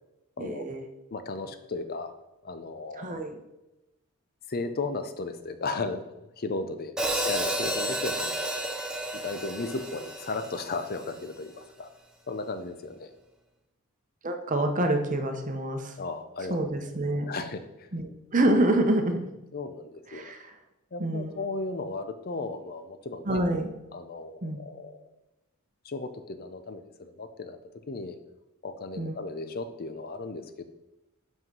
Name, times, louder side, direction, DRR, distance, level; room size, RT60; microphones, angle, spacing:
voice 1, 0.4-0.8 2.9-3.4 14.2-15.9 16.5-17.3 17.9-19.2 20.1-20.5 21.0-21.4 23.2-23.7 24.4-24.6 29.0-29.2, right 1 dB, 35° right, 5 dB, 0.9 m, -27 dB
voice 2, 1.1-2.1 2.4-3.1 4.5-6.0 6.4-6.9 7.2-8.6 9.1-11.9 12.3-13.1 16.0-16.6 17.2-17.6 19.5-20.3 20.9-23.4 23.9-25.0 25.8-27.6 27.9-28.2 28.6-30.6, left 3 dB, 45° left, 9 dB, 0.6 m, -35 dB
Hi-hat, 7.0-11.1, right 1 dB, 5° right, 0.7 m, -31 dB
5.6 x 5.5 x 5.4 m, 0.96 s
head